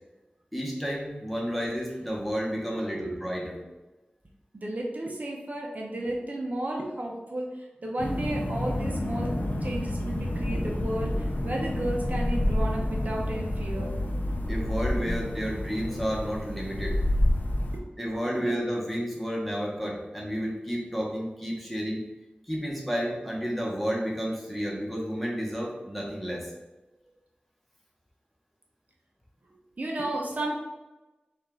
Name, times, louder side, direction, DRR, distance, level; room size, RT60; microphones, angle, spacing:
voice 1, 0.5-3.6 14.5-17.0 18.0-22.0 22.5-26.5, equal, 5° left, -3 dB, 1.1 m, -31 dB
voice 2, 2.6-3.2 4.5-9.3 9.6-13.9 15.1-15.2 17.7-17.9 18.4-18.5 29.8-30.6, right 1 dB, 55° right, -1 dB, 0.7 m, -33 dB
sound 1, 8.0-17.8, left 1 dB, 65° left, 0.6 m, -29 dB
5.2 x 2.5 x 3.7 m, 1.1 s
wide cardioid pair, 70°, 3 cm